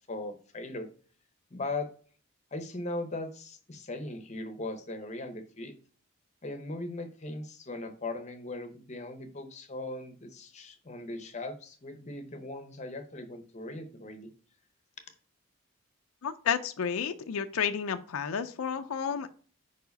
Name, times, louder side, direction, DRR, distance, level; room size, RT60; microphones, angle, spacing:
voice 1, 0.1-0.9 1.5-1.9 2.5-5.7 6.4-14.3, left 2 dB, 30° left, 8 dB, 0.7 m, -39 dB
voice 2, 16.2-19.3, left 7 dB, 80° left, 8 dB, 0.5 m, -31 dB
4.9 x 4.7 x 5.2 m, 0.42 s
head